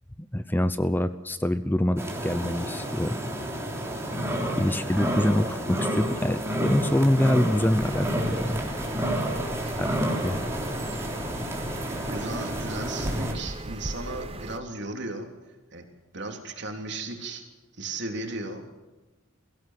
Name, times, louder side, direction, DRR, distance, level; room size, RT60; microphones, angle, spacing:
voice 1, 0.3-3.2 4.6-8.6 9.8-10.4, left 1 dB, 10° left, 12 dB, 0.6 m, -25 dB
sound 1, 2.0-13.3, equal, 15° right, 3.4 m, -30 dB
sound 2, 7.8-14.6, right 1 dB, 30° right, 1.0 m, -38 dB
voice 2, 12.1-15.3 15.7-15.9 16.1-17.4 17.8-18.6, right 2 dB, 60° right, 3 dB, 3.5 m, -35 dB
23.0 x 16.5 x 7.6 m, 1.2 s
head